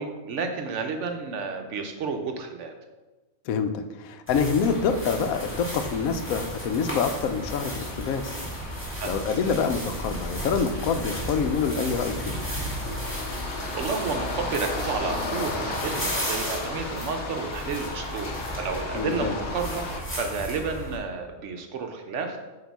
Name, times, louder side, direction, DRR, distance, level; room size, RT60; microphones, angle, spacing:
voice 1, 0.0-2.7 9.0-9.1 13.3-19.9 20.1-22.4, right 4 dB, 65° right, 5 dB, 0.9 m, -31 dB
voice 2, 3.5-8.4 9.0-12.4 18.9-19.4, left 5 dB, 80° left, 9 dB, 1.0 m, -26 dB
sound 1, 4.3-21.0, equal, 10° left, 1.8 m, -34 dB
sound 2, 4.6-20.0, left 3 dB, 50° left, 0.9 m, -36 dB
8.0 x 2.9 x 4.6 m, 1.2 s
omnidirectional pair, 1.5 m